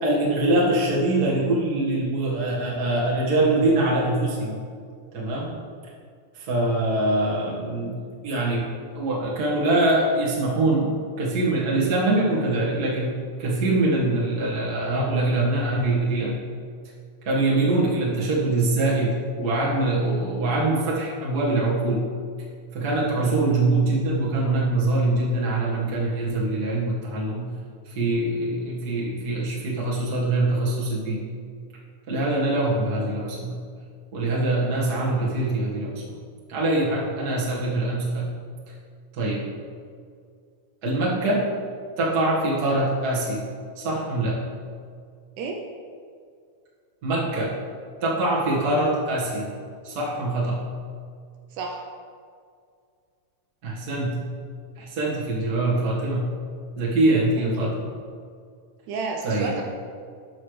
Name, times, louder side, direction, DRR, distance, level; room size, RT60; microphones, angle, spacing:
voice 1, 0.0-4.6 5.1-5.6 6.3-8.0 8.2-10.9 11.2-16.4 17.2-22.1 22.7-27.5 27.8-31.2 32.1-33.6 34.1-36.1 36.5-38.3 39.1-39.4 40.8-41.5 42.0-43.4 43.7-44.4 47.0-47.6 48.0-49.5 49.8-50.7 53.6-54.2 54.8-56.3 56.8-57.8 59.2-59.5, right 2 dB, 40° right, -6 dB, 1.7 m, -23 dB
voice 2, 51.5-51.8 57.4-57.7 58.9-59.6, right 4 dB, 80° right, 1 dB, 2.1 m, -31 dB
12.5 x 5.7 x 3.3 m, 2.2 s
omnidirectional pair, 3.6 m